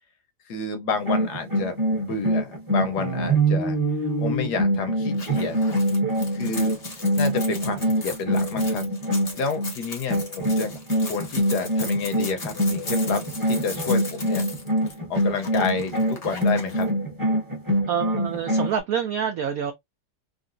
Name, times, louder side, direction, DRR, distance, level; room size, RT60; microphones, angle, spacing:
voice 1, 0.5-3.8 4.2-5.6 6.3-6.7 7.1-8.9 9.3-10.7 11.1-14.4 15.1-16.9, left 5 dB, 65° left, 1.2 m, -29 dB
sound 1, 0.9-9.7 10.1-18.8, right 1 dB, 15° right, 0.7 m, -24 dB
sound 2, 5.1-16.8, left 3 dB, 30° left, 0.7 m, -38 dB
voice 2, 17.9-19.7, right 7 dB, 80° right, 0.7 m, -26 dB
3.8 x 2.2 x 2.5 m
omnidirectional pair, 2.1 m